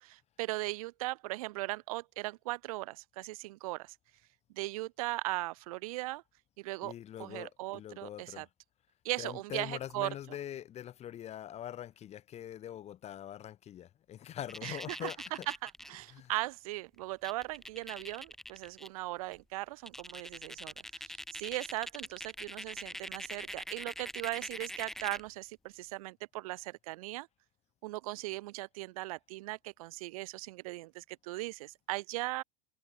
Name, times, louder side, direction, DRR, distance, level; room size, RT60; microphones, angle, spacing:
voice 1, 0.0-3.9 4.5-6.2 6.6-6.9 7.2-8.5 9.0-10.1 14.6-15.1 15.5-20.7 21.3-27.3 27.8-32.4, right 20 dB, 70° right, 1.0 m, -38 dB
voice 2, 6.8-8.5 9.2-15.5 15.9-16.4, left 11 dB, 35° left, 1.2 m, -43 dB
sound 1, 14.5-15.9 17.0-17.1 17.2-18.9 19.3-19.4 19.9-25.3, left 1 dB, ahead, 1.0 m, -43 dB
hypercardioid pair, 95°, 19 cm